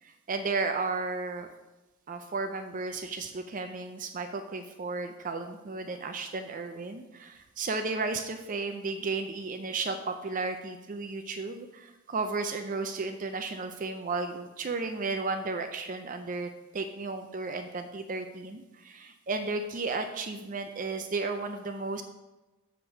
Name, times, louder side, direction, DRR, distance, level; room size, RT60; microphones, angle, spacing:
voice 1, 0.0-1.5 2.1-22.0, right 3 dB, 35° right, 7 dB, 0.4 m, -34 dB
7.1 x 5.1 x 5.8 m, 1.1 s
head